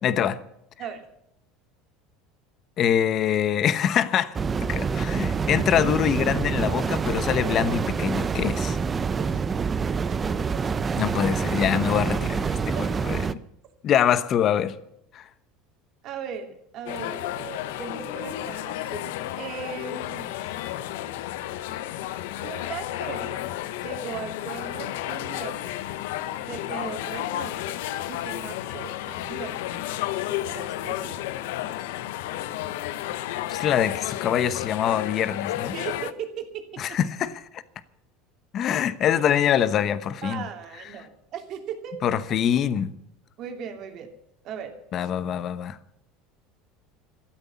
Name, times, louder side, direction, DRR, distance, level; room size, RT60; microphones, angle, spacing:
voice 1, 0.0-0.4 2.8-8.8 11.0-12.8 13.1-13.4 13.8-14.8 15.1-15.3 33.5-35.7 36.8-37.6 38.5-40.4 42.0-42.9 44.9-45.8, left 9 dB, 35° left, 1.0 m, -24 dB
sound 1, 4.3-13.3, right 5 dB, 20° right, 0.6 m, -26 dB
voice 2, 9.2-9.7 10.1-10.6 12.7-12.9 16.0-20.5 22.4-23.4 23.8-25.6 26.5-27.8 28.1-29.7 30.3-31.2 35.7-37.0 39.1-39.2 40.2-42.0 43.4-44.1 44.4-45.1, right 7 dB, 45° right, 2.8 m, -38 dB
sound 2, 16.9-36.1, left 13 dB, 85° left, 0.9 m, -32 dB
13.5 x 12.5 x 7.1 m
cardioid pair, 150°, 0 cm